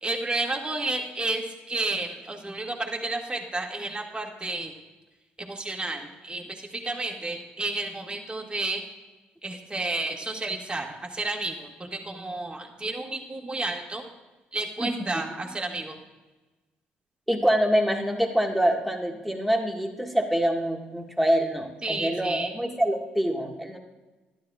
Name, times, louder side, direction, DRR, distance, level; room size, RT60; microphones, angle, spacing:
voice 1, 0.0-4.7 5.4-8.8 9.4-14.0 14.5-16.0 21.8-22.5, right 2 dB, 20° right, 1 dB, 1.8 m, -31 dB
voice 2, 14.8-15.2 17.3-23.8, equal, ahead, 2 dB, 1.7 m, -25 dB
12.5 x 11.0 x 2.4 m, 1.1 s
hypercardioid pair, 50°, 5 cm